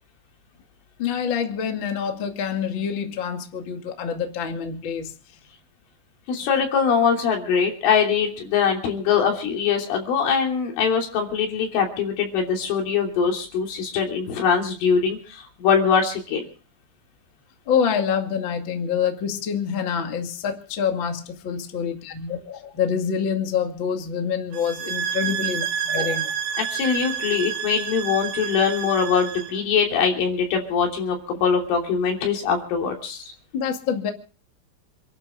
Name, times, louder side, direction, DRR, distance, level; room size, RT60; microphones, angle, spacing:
voice 1, 1.0-5.1 17.6-26.3 33.5-34.1, left 7 dB, 50° left, 4 dB, 1.5 m, -26 dB
voice 2, 6.3-16.4 26.6-33.2, left 6 dB, 70° left, 2 dB, 5.6 m, -22 dB
sound 1, 24.5-29.6, right 8 dB, 80° right, 4.6 m, -29 dB
28.0 x 11.5 x 3.7 m, 0.41 s
omnidirectional pair, 5.9 m